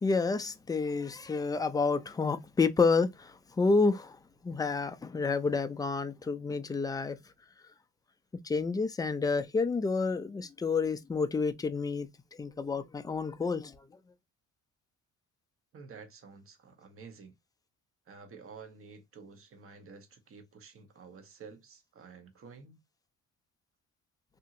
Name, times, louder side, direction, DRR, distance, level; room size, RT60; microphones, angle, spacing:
voice 1, 0.0-7.2 8.4-12.1 12.4-13.8, left 4 dB, 15° left, 0.3 m, -29 dB
voice 2, 15.7-17.3 18.1-22.8, right 5 dB, 45° right, 0.9 m, -51 dB
2.8 x 2.6 x 2.5 m
cardioid pair, 90°, 30 cm